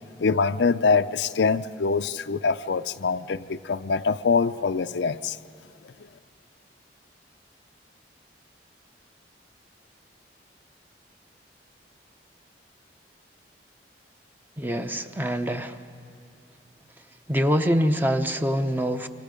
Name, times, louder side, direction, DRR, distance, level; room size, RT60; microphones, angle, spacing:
voice 1, 0.2-5.4, left 4 dB, 75° left, 11 dB, 0.5 m, -24 dB
voice 2, 14.6-15.8 17.3-19.1, equal, 10° right, 7 dB, 0.7 m, -24 dB
28.5 x 25.0 x 5.2 m, 2.7 s
head